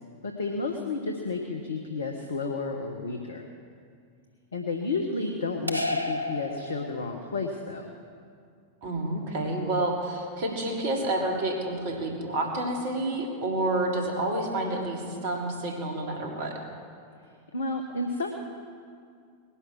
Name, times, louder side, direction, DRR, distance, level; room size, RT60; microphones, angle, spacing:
voice 1, 0.2-3.4 4.5-7.9 17.5-18.3, left 3 dB, 70° left, 4 dB, 1.3 m, -31 dB
sound 1, 5.7-7.3, left 2 dB, 85° right, 0.8 m, -31 dB
voice 2, 8.8-16.5, right 2 dB, 50° right, 0 dB, 3.4 m, -29 dB
19.5 x 11.5 x 6.1 m, 2.2 s
figure-of-eight pair, 90°, 0 cm